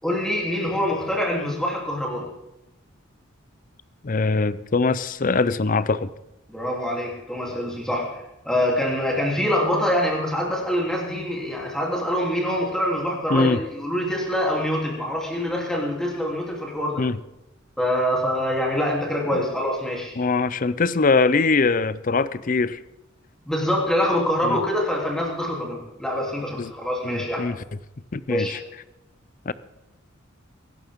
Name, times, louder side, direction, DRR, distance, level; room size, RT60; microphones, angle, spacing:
voice 1, 0.0-2.3 6.5-17.0 17.8-20.2 23.4-27.5 28.3-28.6, equal, 5° left, -2 dB, 3.2 m, -25 dB
voice 2, 4.0-6.1 13.3-13.6 17.0-17.2 19.3-19.4 20.2-22.8 24.4-24.6 26.6-26.7 27.0-27.6 28.1-28.6 29.5-29.6, left 4 dB, 40° left, 17 dB, 0.5 m, -22 dB
23.0 x 11.5 x 3.7 m, 0.92 s
head